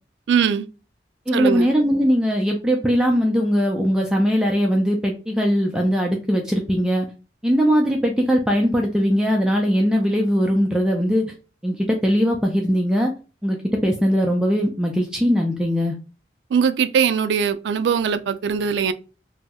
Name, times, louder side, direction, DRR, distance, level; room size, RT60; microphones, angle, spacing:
voice 1, 0.3-0.7 1.3-1.7 16.5-18.9, right 7 dB, 85° right, 0.3 m, -21 dB
voice 2, 1.3-7.1 7.4-11.2 11.6-13.1 13.4-16.0, equal, 5° right, 0.3 m, -20 dB
2.6 x 2.0 x 3.5 m
head